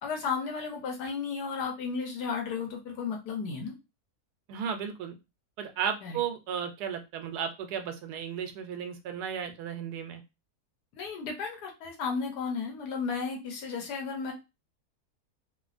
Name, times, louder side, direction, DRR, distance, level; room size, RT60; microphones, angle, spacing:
voice 1, 0.0-3.7 6.0-6.2 10.9-14.3, left 5 dB, 85° left, 2 dB, 1.3 m, -34 dB
voice 2, 4.5-5.2 5.6-10.2, right 8 dB, 80° right, 6 dB, 1.1 m, -34 dB
3.2 x 2.2 x 2.4 m, 0.26 s
omnidirectional pair, 1.7 m